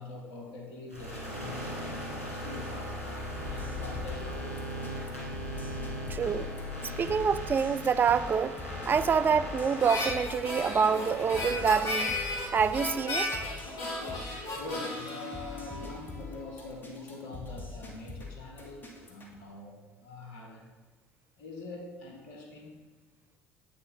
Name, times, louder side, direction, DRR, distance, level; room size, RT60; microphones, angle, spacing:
voice 1, 0.0-1.8 2.2-4.9 14.5-20.7 21.4-22.7, left 2 dB, 65° left, 0 dB, 1.6 m, -44 dB
sound 1, 0.9-13.7, left 1 dB, 90° left, 1.9 m, -39 dB
sound 2, 3.3-19.3, left 3 dB, 25° left, 1.8 m, -44 dB
voice 2, 6.1-6.5 7.0-8.6 8.9-12.2 12.5-13.3, right 6 dB, 25° right, 13 dB, 0.3 m, -26 dB
Harmonica, 9.8-16.3, left 2 dB, 40° left, 2.4 m, -35 dB
8.1 x 6.3 x 3.7 m, 1.3 s
figure-of-eight pair, 55°, 7 cm